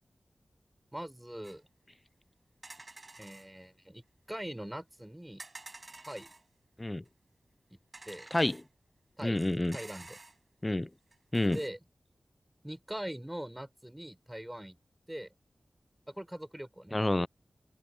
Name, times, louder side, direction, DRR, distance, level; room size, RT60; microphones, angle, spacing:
voice 1, 0.9-1.6 3.2-4.0 4.3-5.4 6.1-6.3 8.1-8.3 9.2-9.4 9.7-10.2 11.5-11.8 12.6-14.8 15.1-15.3 16.1-17.0, right 1 dB, 10° right, 7.0 m, -42 dB
sound 1, 1.4-1.6 2.6-3.5 5.4-6.4 7.1-7.2 7.9-8.7 9.2-10.4 11.1-11.7, right 2 dB, 40° right, 5.8 m, -50 dB
voice 2, 8.3-8.6 9.2-9.8 10.6-10.9 11.3-11.6 16.9-17.3, left 1 dB, 20° left, 0.6 m, -28 dB
open air
wide cardioid pair, 60°, 0 cm